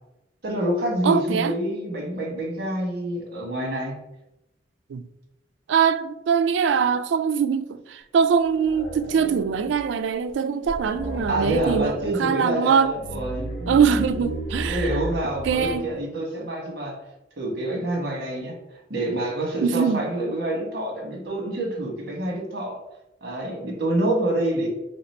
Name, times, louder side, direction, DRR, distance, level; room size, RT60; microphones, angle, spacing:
voice 1, 0.4-3.9 11.3-13.5 14.7-17.0 17.4-18.5 18.9-22.8 23.2-24.7, right 1 dB, 60° right, 1.3 m, -27 dB
voice 2, 1.0-1.5 4.9-5.1 5.7-12.9 13.7-15.0 15.5-15.9 19.6-20.0, right 6 dB, 80° right, 0.3 m, -22 dB
sound 1, 8.4-9.9 10.3-10.4 10.6-12.2 12.8-15.9, equal, 55° left, 1.1 m, -33 dB
3.2 x 2.9 x 4.2 m
head